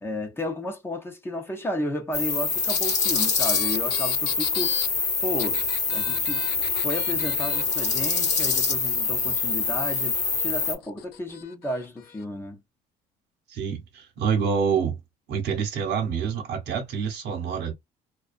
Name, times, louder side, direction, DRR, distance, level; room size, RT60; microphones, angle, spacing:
voice 1, 0.0-4.8 5.2-5.6 5.9-6.4 6.8-12.6, left 1 dB, 15° left, 0.6 m, -32 dB
sound 1, 2.1-10.7, left 5 dB, 45° left, 1.0 m, -25 dB
sound 2, 2.7-4.9 5.4-7.6 8.4-10.0 10.8-11.4 12.2-12.3, left 11 dB, 80° left, 0.4 m, -34 dB
voice 2, 13.5-15.0 15.3-17.7, right 6 dB, 75° right, 0.9 m, -27 dB
2.3 x 2.3 x 2.4 m
cardioid pair, 110°, 17 cm